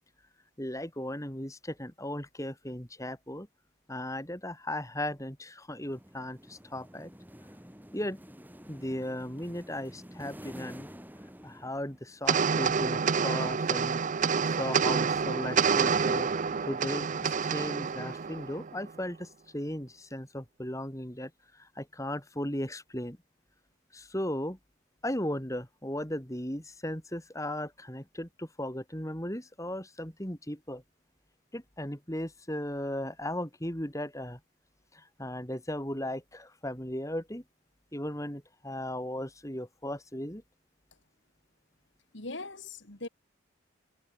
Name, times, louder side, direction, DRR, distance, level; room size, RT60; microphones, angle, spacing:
voice 1, 0.6-3.5 3.9-7.1 7.9-8.2 8.7-10.9 11.4-14.0 14.4-16.3 16.6-23.2 23.9-24.6 25.0-30.8 31.5-34.4 34.9-37.4 37.9-40.4, left 1 dB, 15° left, 4.1 m, -36 dB
sound 1, 5.8-12.3, equal, 10° right, 6.7 m, -49 dB
sound 2, 12.3-18.9, right 6 dB, 35° right, 0.5 m, -28 dB
voice 2, 42.1-43.1, left 2 dB, 60° left, 3.1 m, -40 dB
head